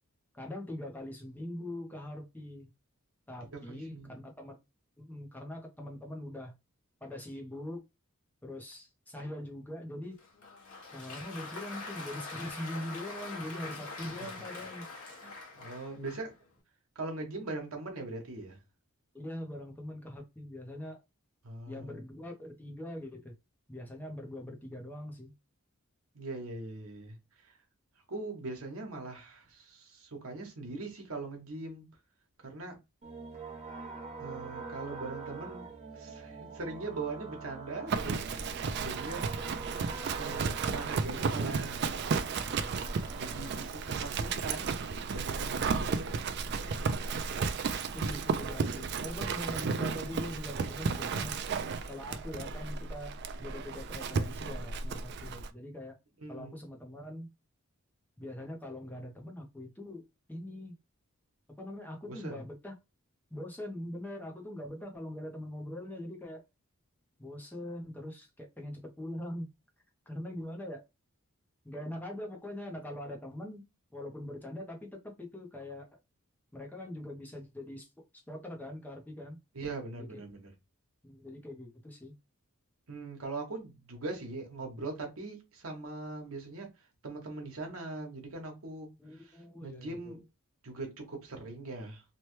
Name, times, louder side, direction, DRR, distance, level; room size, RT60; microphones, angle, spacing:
voice 1, 0.3-2.7 3.3-4.6 5.0-6.5 7.0-7.8 8.4-10.2 10.9-14.9 16.0-16.1 19.1-21.0 21.7-23.3 23.7-25.3 47.9-51.4 51.8-56.0 56.3-57.3 58.2-60.8 61.6-62.7 63.3-66.4 67.2-69.5 70.1-70.8 71.6-73.6 73.9-76.0 76.5-79.4 80.0-80.2 81.0-82.1 89.0-90.2, left 1 dB, 10° left, 0.5 m, -42 dB
voice 2, 3.7-4.2 14.2-14.3 15.2-16.3 16.9-18.6 21.4-22.0 26.1-27.2 27.4-27.5 28.1-31.8 32.4-32.8 34.2-39.3 40.1-42.0 43.2-44.7 45.1-46.2 56.2-56.5 62.1-62.4 79.5-80.5 82.9-86.7 87.0-90.2 90.6-92.0, right 3 dB, 70° right, 1.0 m, -41 dB
Applause, 10.2-16.4, left 3 dB, 75° left, 1.0 m, -44 dB
sound 1, 33.0-43.7, right 4 dB, 30° right, 0.8 m, -44 dB
Livestock farm animals working animals, 37.9-55.5, right 5 dB, 50° right, 0.3 m, -33 dB
3.0 x 2.1 x 3.0 m
head